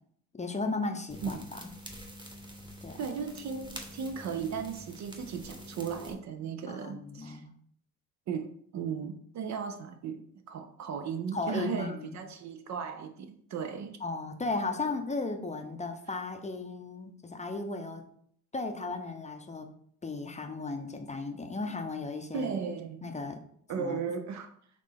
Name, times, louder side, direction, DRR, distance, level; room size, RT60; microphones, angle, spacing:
voice 1, 0.3-1.6 2.8-3.1 6.7-7.5 11.3-12.2 14.0-18.0 18.5-19.7 20.0-22.5 23.0-23.4 23.8-24.0, left 3 dB, 15° left, 5 dB, 0.6 m, -35 dB
sound 1, 1.1-6.1, equal, 10° right, 1.1 m, -46 dB
voice 2, 3.0-7.4 8.3-14.0 22.3-23.1 23.7-24.5, right 6 dB, 45° right, 8 dB, 0.5 m, -36 dB
4.0 x 3.1 x 3.4 m, 0.62 s
hypercardioid pair, 50°, 41 cm